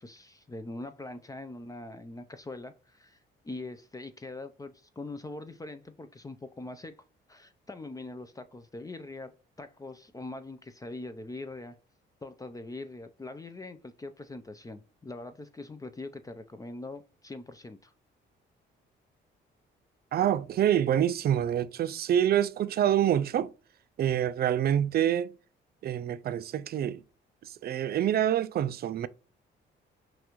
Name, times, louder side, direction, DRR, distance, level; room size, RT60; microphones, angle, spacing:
voice 1, 0.0-3.2 3.4-7.0 7.3-9.3 9.6-11.8 12.2-17.9, left 2 dB, 20° left, 0.5 m, -42 dB
voice 2, 20.1-23.5 24.0-25.3 25.8-27.0 27.4-29.1, right 10 dB, 50° right, 0.4 m, -26 dB
6.0 x 2.5 x 3.0 m
cardioid pair, 90°, 20 cm